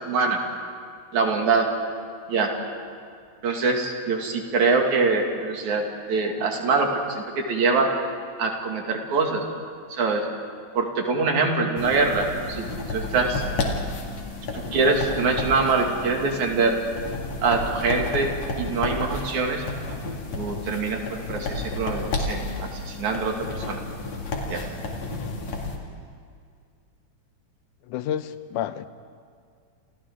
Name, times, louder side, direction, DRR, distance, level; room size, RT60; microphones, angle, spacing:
voice 1, 0.0-0.4 1.1-1.7 2.3-2.5 3.4-7.9 8.4-9.4 9.9-10.3 10.7-13.5 14.5-16.8 17.4-19.6 20.3-23.8 24.5-24.7, right 4 dB, 70° right, 1 dB, 3.5 m, -24 dB
sound 1, 11.8-25.8, left 3 dB, 60° left, 3.4 m, -32 dB
voice 2, 27.9-28.9, left 10 dB, 90° left, 12 dB, 2.3 m, -29 dB
29.5 x 28.0 x 3.7 m, 2.2 s
omnidirectional pair, 3.5 m